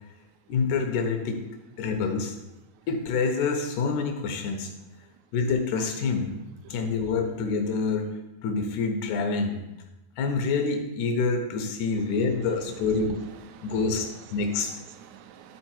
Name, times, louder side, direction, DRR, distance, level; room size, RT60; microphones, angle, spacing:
voice 1, 0.5-1.4 1.8-2.4 2.9-4.7 5.3-6.4 6.7-8.1 8.4-9.6 10.2-13.2 13.6-14.7, left 4 dB, 70° left, 4 dB, 2.1 m, -27 dB
voice 2, 12.0-15.6, right 8 dB, 80° right, 7 dB, 1.7 m, -46 dB
11.5 x 4.5 x 4.5 m, 0.99 s
omnidirectional pair, 4.0 m